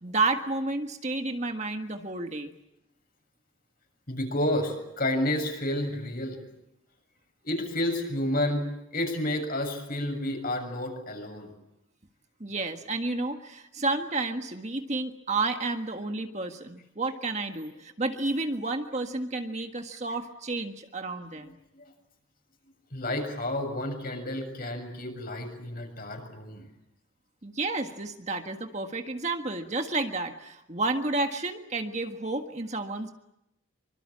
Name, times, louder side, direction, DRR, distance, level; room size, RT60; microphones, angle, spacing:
voice 1, 0.0-2.5 12.4-21.5 27.4-33.1, right 3 dB, 35° right, 5 dB, 1.6 m, -31 dB
voice 2, 4.1-6.4 7.4-11.5 21.3-21.9 22.9-26.6, left 1 dB, 45° left, 4 dB, 6.9 m, -30 dB
25.5 x 25.0 x 8.6 m, 0.85 s
head